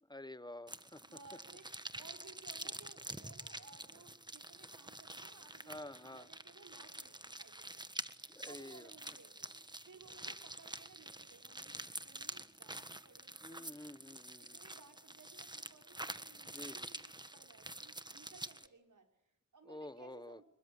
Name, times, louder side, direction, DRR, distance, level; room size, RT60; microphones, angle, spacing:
voice 1, 0.1-1.1 5.7-6.3 8.3-8.9 13.4-14.6 16.5-16.8 19.7-20.4, left 1 dB, 15° left, 1.2 m, -49 dB
sound 1, 0.7-18.7, right 1 dB, 15° right, 1.5 m, -48 dB
voice 2, 0.9-1.7 1.9-8.0 8.5-13.8 14.4-20.4, right 4 dB, 75° right, 5.7 m, -60 dB
27.0 x 22.5 x 9.7 m
wide cardioid pair, 80°, 31 cm